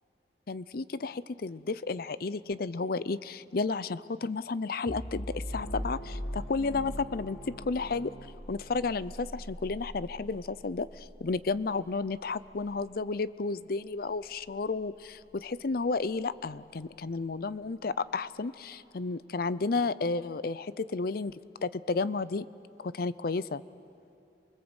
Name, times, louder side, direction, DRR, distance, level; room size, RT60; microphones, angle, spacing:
voice 1, 0.5-8.1 8.5-22.4 22.8-23.6, left 4 dB, 55° left, 17 dB, 0.6 m, -32 dB
sound 1, 4.9-16.3, equal, 20° left, 1.6 m, -43 dB
sound 2, 5.5-9.1, right 2 dB, 85° left, 2.6 m, -48 dB
28.5 x 21.0 x 8.0 m, 2.6 s
head